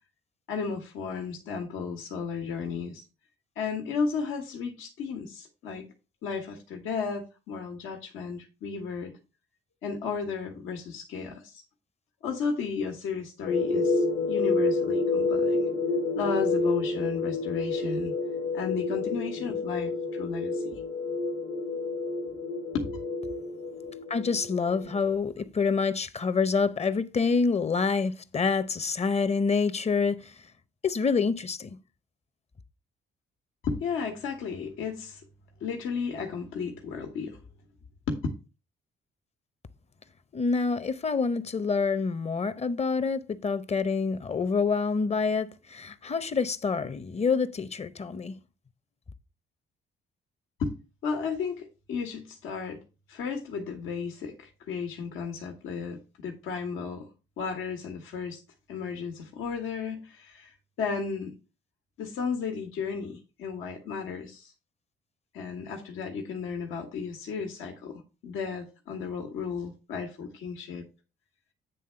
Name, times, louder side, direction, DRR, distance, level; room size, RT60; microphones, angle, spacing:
voice 1, 0.5-3.0 3.5-5.8 6.2-9.1 9.8-11.6 12.2-15.6 16.1-18.1 18.5-20.8 22.7-22.9 33.6-35.2 35.6-37.4 38.1-38.3 50.6-50.7 51.0-52.8 53.1-57.1 57.4-58.4 58.7-61.3 62.0-64.5 65.3-70.8, left 5 dB, 90° left, 1.6 m, -34 dB
sound 1, 13.5-25.1, left 3 dB, 65° left, 1.3 m, -29 dB
voice 2, 24.1-30.4 30.8-31.8 40.3-48.4, left 5 dB, 30° left, 0.8 m, -27 dB
9.3 x 3.6 x 5.7 m
cardioid pair, 90°, 20 cm